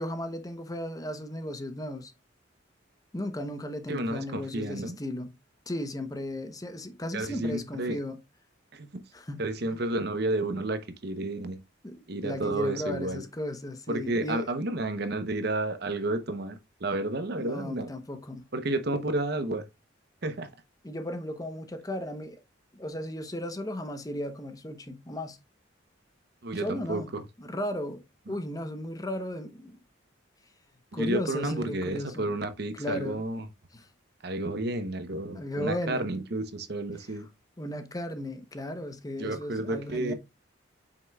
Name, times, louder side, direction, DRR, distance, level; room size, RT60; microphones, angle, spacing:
voice 1, 0.0-2.1 3.1-5.3 5.7-8.2 9.1-9.8 11.8-14.5 17.4-18.5 20.8-22.4 22.7-25.4 26.6-27.1 27.4-29.8 30.9-32.3 32.7-33.2 33.7-33.9 35.3-36.1 37.6-40.1, left 1 dB, 20° left, 0.8 m, -35 dB
voice 2, 3.9-5.0 7.1-8.0 8.7-9.0 9.4-11.6 12.1-13.2 13.9-17.9 18.5-19.7 20.2-20.5 26.4-27.2 28.3-28.4 30.9-33.5 34.2-37.3 39.2-40.1, right 2 dB, 55° right, 0.8 m, -31 dB
7.7 x 5.8 x 2.3 m
head